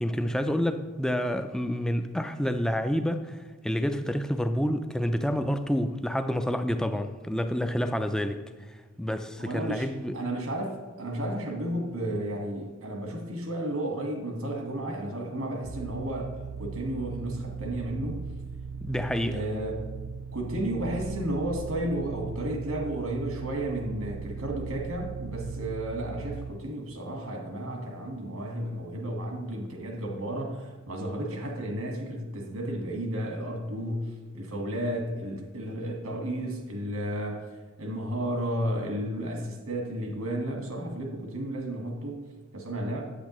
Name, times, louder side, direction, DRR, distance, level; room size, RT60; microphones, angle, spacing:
voice 1, 0.0-3.4 3.6-8.4 9.0-10.2 18.8-19.4, equal, 5° left, 0.3 m, -28 dB
voice 2, 9.4-9.9 10.1-18.3 19.3-19.9 20.3-37.4 37.8-42.2 42.5-43.0, right 1 dB, 90° right, 1.5 m, -33 dB
sound 1, 15.6-26.5, right 5 dB, 65° right, 0.5 m, -38 dB
8.4 x 8.3 x 3.0 m
head